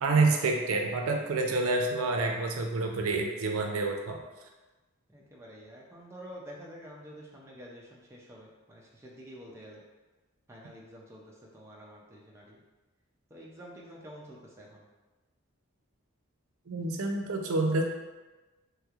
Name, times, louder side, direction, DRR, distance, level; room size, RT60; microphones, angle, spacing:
voice 1, 0.0-4.2 16.7-17.8, right 3 dB, 85° right, 2 dB, 0.5 m, -28 dB
voice 2, 5.1-9.8 10.5-12.6 13.3-14.9, equal, 15° right, -3 dB, 0.4 m, -48 dB
3.2 x 3.0 x 2.4 m, 1.2 s
head